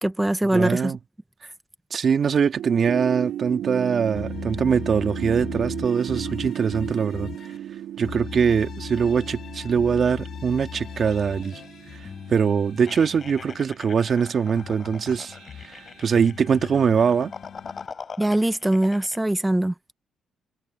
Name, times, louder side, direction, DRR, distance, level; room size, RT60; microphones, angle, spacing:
voice 1, 0.0-0.9 18.2-19.7, right 1 dB, 10° right, 1.5 m, -22 dB
voice 2, 0.5-1.0 1.9-7.3 8.0-11.6 12.3-15.3 15.6-17.3, right 6 dB, 50° right, 2.5 m, -22 dB
sound 1, 2.6-16.2, right 11 dB, 70° right, 0.9 m, -36 dB
sound 2, 4.1-7.6 8.0-13.6 14.0-17.9, left 8 dB, 60° left, 7.5 m, -39 dB
sound 3, 12.9-19.2, left 5 dB, 40° left, 7.2 m, -42 dB
supercardioid pair, 60°, 0 cm